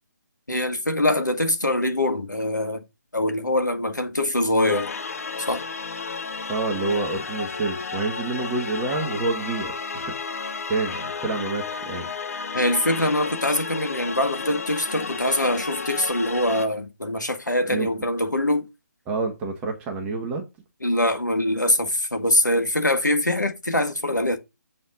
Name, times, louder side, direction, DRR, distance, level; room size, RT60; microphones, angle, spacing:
voice 1, 0.5-2.8 3.1-4.9 5.5-5.7 12.5-18.7 20.8-24.4, left 1 dB, 80° left, 2.1 m, -23 dB
sound 1, 4.7-16.7, left 4 dB, 55° left, 1.0 m, -32 dB
voice 2, 6.5-12.1 17.7-17.9 19.1-20.5, right 3 dB, 15° right, 1.4 m, -28 dB
7.9 x 4.3 x 6.6 m
figure-of-eight pair, 145°, 10 cm